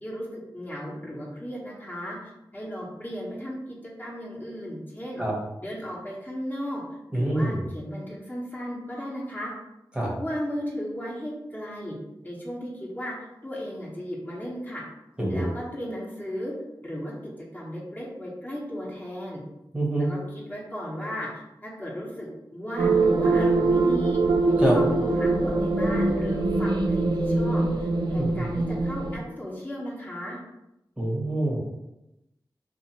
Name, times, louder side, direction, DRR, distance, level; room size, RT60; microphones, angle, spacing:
voice 1, 0.0-5.2 5.6-6.8 7.1-9.5 10.2-12.0 12.2-14.8 15.3-16.5 16.8-19.4 20.0-24.2 24.6-30.4, equal, 20° left, -5 dB, 0.9 m, -35 dB
voice 2, 7.1-7.7 10.0-10.1 15.2-15.5 19.7-20.1 24.6-24.7 28.2-28.4 31.0-31.6, right 1 dB, 10° right, -3 dB, 0.8 m, -26 dB
sound 1, 22.8-29.2, right 3 dB, 60° right, 0.5 m, -23 dB
2.5 x 2.4 x 2.9 m, 0.91 s
cardioid pair, 40°, 8 cm